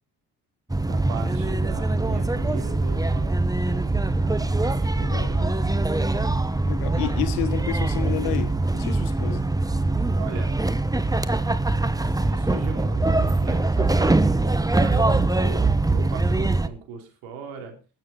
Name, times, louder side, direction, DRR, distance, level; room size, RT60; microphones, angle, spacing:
sound 1, 0.7-16.7, right 2 dB, 10° right, 1.0 m, -23 dB
voice 1, 0.8-5.5 10.2-10.5 12.2-17.7, right 6 dB, 75° right, 3.2 m, -38 dB
voice 2, 4.9-5.4 6.6-9.5, left 12 dB, 80° left, 1.3 m, -30 dB
19.5 x 7.7 x 4.2 m
hypercardioid pair, 45°, 48 cm